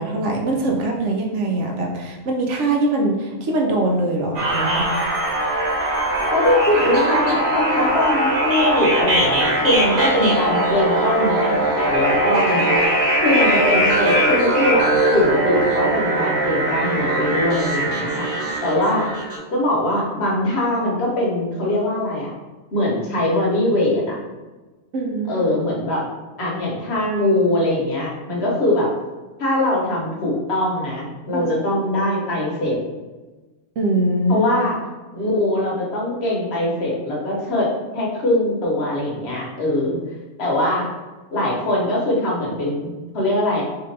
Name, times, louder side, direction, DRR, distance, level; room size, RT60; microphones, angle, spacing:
voice 1, 0.0-5.2 24.9-25.4 31.3-31.4 33.8-34.5, right 2 dB, 70° right, 0 dB, 0.9 m, -22 dB
sound 1, 4.3-19.4, right 1 dB, 85° right, 1.4 m, -20 dB
voice 2, 6.3-19.1 19.5-22.3 22.7-24.2 25.3-26.1 26.4-28.9 29.4-32.8 34.3-34.8 35.1-40.0 40.4-40.9 41.3-43.6, left 1 dB, 55° left, -4 dB, 1.1 m, -22 dB
3.6 x 2.8 x 3.2 m, 1.2 s
omnidirectional pair, 1.4 m